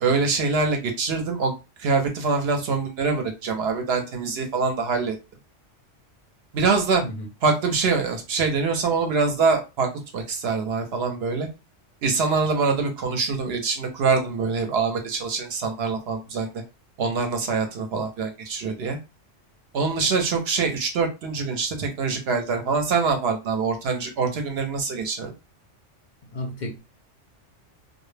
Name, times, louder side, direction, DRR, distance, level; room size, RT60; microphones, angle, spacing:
voice 1, 0.0-1.5 1.8-5.2 6.5-7.0 7.4-11.5 12.0-16.5 17.0-19.0 19.7-25.3, right 4 dB, 65° right, 0.7 m, -24 dB
voice 2, 26.3-26.8, left 1 dB, 55° left, 0.5 m, -32 dB
2.2 x 2.0 x 3.1 m
omnidirectional pair, 1.2 m